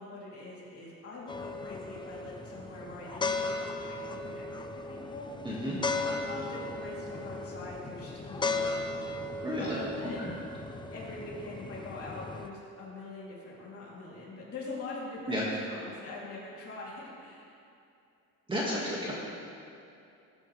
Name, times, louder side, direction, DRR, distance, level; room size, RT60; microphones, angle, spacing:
voice 1, 0.0-5.3 5.9-9.1 9.6-10.2 10.9-17.5, left 2 dB, 40° left, -6 dB, 3.6 m, -43 dB
sound 1, 1.3-12.5, left 3 dB, 15° left, 0.4 m, -36 dB
voice 2, 5.4-5.8 9.4-9.8 10.2-10.3 15.3-15.4 18.5-19.1, equal, 15° right, -6 dB, 2.2 m, -32 dB
19.5 x 10.5 x 3.5 m, 2.6 s
cardioid pair, 160°, 34 cm